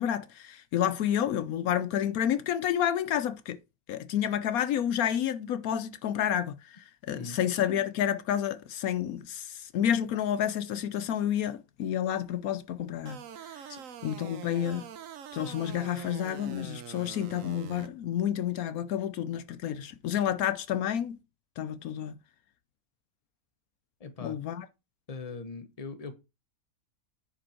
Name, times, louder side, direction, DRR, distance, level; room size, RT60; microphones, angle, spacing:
voice 1, 0.0-3.6 3.9-13.2 14.0-14.9 15.3-21.2 21.6-22.1 24.2-24.7, left 10 dB, 75° left, 1.1 m, -30 dB
sound 1, 13.1-17.9, right 9 dB, 65° right, 1.1 m, -44 dB
voice 2, 24.0-24.4 25.1-26.2, left 4 dB, 30° left, 1.0 m, -41 dB
9.7 x 5.1 x 4.4 m
omnidirectional pair, 1.6 m